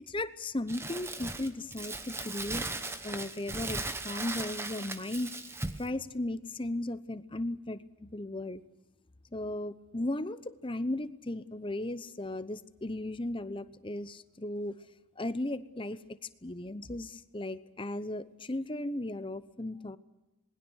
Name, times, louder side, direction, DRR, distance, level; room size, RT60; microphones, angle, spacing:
voice 1, 0.1-2.7 3.0-3.8 4.0-5.3 5.8-8.6 9.3-14.8 15.2-16.0 16.4-20.0, left 1 dB, 25° left, 13 dB, 0.9 m, -36 dB
Crumpling crinkling, 0.7-5.9, right 2 dB, 10° right, 1.1 m, -38 dB
27.0 x 20.5 x 6.4 m, 0.98 s
head